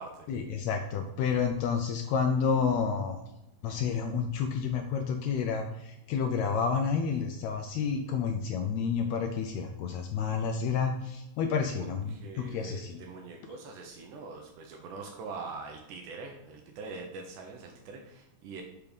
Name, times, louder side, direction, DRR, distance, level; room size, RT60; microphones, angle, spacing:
voice 1, 0.3-3.2 3.6-13.0, left 6 dB, 80° left, 5 dB, 1.6 m, -30 dB
voice 2, 11.7-18.6, right 4 dB, 80° right, 2 dB, 2.3 m, -43 dB
6.7 x 3.5 x 5.2 m, 0.92 s
omnidirectional pair, 3.6 m